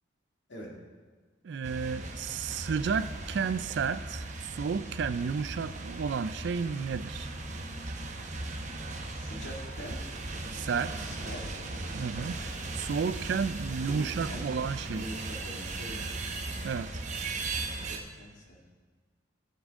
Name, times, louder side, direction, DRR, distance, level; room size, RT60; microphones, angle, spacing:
voice 1, 1.4-7.3 10.5-11.1 11.9-15.1 16.6-17.0, right 6 dB, 60° right, 14 dB, 0.3 m, -32 dB
sound 1, 1.6-18.0, right 2 dB, 35° right, 0.8 m, -38 dB
voice 2, 9.1-10.0 11.0-11.4 13.9-14.5 14.8-16.1 17.8-18.6, equal, 65° left, -1 dB, 2.0 m, -43 dB
15.0 x 7.3 x 3.7 m, 1.5 s
head